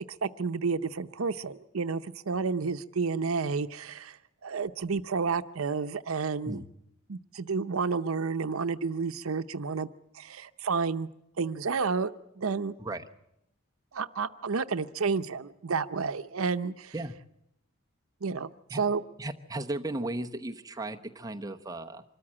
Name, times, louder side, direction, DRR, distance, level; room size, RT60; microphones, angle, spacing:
voice 1, 0.2-4.2 4.4-6.6 7.1-9.9 10.1-11.1 11.4-12.1 12.4-12.7 13.9-16.9 18.2-18.5 18.8-19.0, right 5 dB, 85° right, 11 dB, 0.7 m, -30 dB
voice 2, 19.2-22.0, right 2 dB, 15° right, 4 dB, 0.9 m, -35 dB
25.5 x 13.5 x 8.6 m, 0.81 s
head